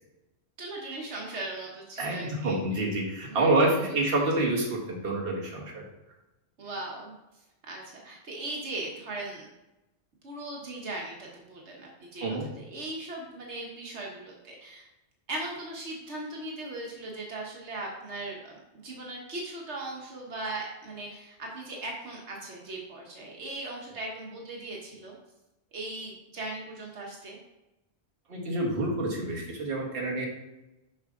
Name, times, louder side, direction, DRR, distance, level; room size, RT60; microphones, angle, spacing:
voice 1, 0.6-2.6 3.3-3.5 3.9-4.0 6.6-7.1 7.7-9.5 10.2-12.2 12.6-14.9 15.3-25.2 25.7-27.4, right 2 dB, 80° right, -1 dB, 1.6 m, -38 dB
voice 2, 2.0-5.8 12.2-12.5 28.3-30.3, right 2 dB, 55° right, -2 dB, 1.7 m, -27 dB
7.3 x 5.6 x 3.7 m, 0.97 s
omnidirectional pair, 1.1 m